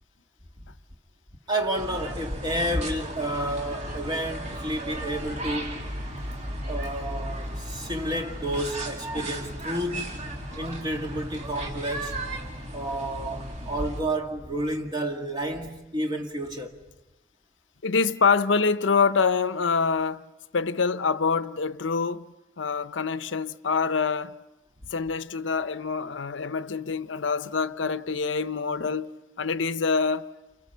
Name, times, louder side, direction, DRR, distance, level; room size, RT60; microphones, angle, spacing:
voice 1, 1.5-5.8 6.7-12.2 12.7-16.8, right 1 dB, 25° right, 1.7 m, -31 dB
sound 1, 1.8-14.0, right 1 dB, 40° right, 3.1 m, -35 dB
voice 2, 17.8-20.2 20.5-22.3 22.6-24.4 24.9-29.1 29.4-30.3, left 5 dB, 80° left, 0.8 m, -25 dB
29.5 x 29.5 x 5.7 m
head